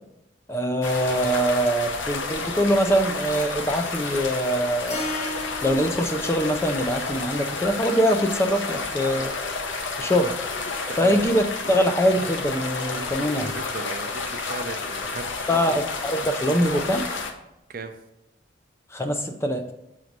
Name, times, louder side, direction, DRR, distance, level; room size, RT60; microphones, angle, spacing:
voice 1, 0.5-5.1 5.6-9.3 10.0-10.3 11.0-13.5 15.5-17.1 18.9-19.7, equal, 15° left, 5 dB, 0.4 m, -23 dB
sound 1, 0.8-17.3, left 4 dB, 75° left, 0.8 m, -31 dB
Keyboard (musical), 4.9-9.1, left 1 dB, 40° left, 1.1 m, -37 dB
voice 2, 13.0-15.8 17.7-17.9, right 3 dB, 50° right, 7 dB, 0.6 m, -37 dB
6.2 x 3.9 x 4.5 m, 0.87 s
head